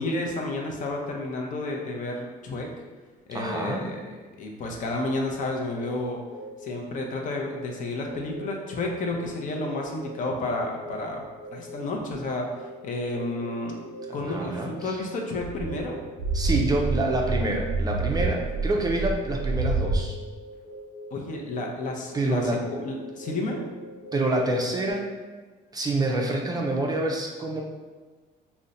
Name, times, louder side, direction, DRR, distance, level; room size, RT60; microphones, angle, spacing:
voice 1, 0.0-2.7 3.3-6.2 6.6-11.2 11.5-12.5 12.8-13.8 14.1-16.0 21.1-22.6 22.8-23.6, left 2 dB, 50° left, 1 dB, 0.6 m, -31 dB
voice 2, 3.3-3.8 14.1-15.0 16.3-20.2 22.1-22.6 24.1-25.0 25.7-27.6, right 2 dB, 25° right, 0 dB, 0.4 m, -27 dB
sound 1, 5.8-24.9, equal, 75° left, 0.9 m, -43 dB
sound 2, 15.4-20.0, right 3 dB, 90° right, 0.5 m, -28 dB
2.5 x 2.1 x 4.0 m, 1.4 s
cardioid pair, 110°, 17 cm